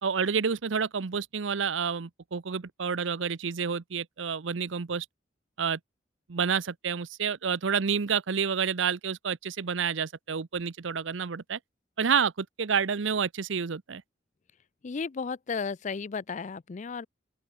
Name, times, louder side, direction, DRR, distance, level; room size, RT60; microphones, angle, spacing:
voice 1, 0.0-5.1 5.6-5.8 6.3-11.6 12.0-14.0, right 6 dB, 80° right, 0.7 m, -29 dB
voice 2, 14.8-17.1, left 5 dB, 40° left, 0.4 m, -34 dB
open air
head